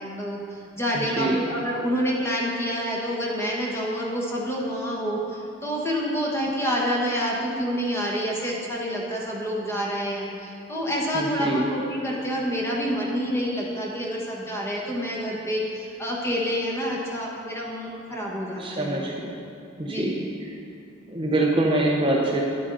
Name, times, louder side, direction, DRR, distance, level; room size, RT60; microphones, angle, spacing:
voice 1, 0.0-19.1 19.8-20.1, equal, 15° left, -3 dB, 1.2 m, -28 dB
voice 2, 0.9-1.4 11.1-11.6 18.6-19.4 19.8-20.2 21.1-22.4, right 2 dB, 25° right, -2 dB, 0.7 m, -24 dB
9.6 x 9.6 x 4.0 m, 2.7 s
head